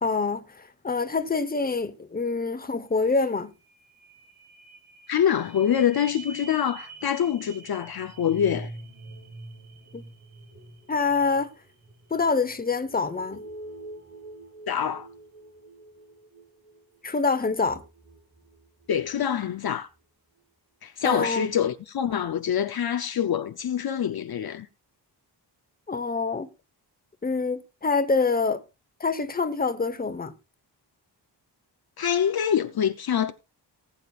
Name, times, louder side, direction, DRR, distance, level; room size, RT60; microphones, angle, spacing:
voice 1, 0.0-3.5 9.9-10.0 10.9-11.5 12.1-13.4 17.0-17.8 21.0-21.5 25.9-26.5 27.2-28.6 29.0-30.3, left 4 dB, 20° left, 1.0 m, -26 dB
sound 1, 2.9-3.0 3.2-19.2 19.7-19.8, right 2 dB, 40° right, 7.4 m, -45 dB
voice 2, 5.1-8.7 14.7-15.1 18.9-19.9 20.8-24.7 32.0-33.3, left 9 dB, 60° left, 0.7 m, -25 dB
19.0 x 8.7 x 2.4 m
wide cardioid pair, 135°, 42 cm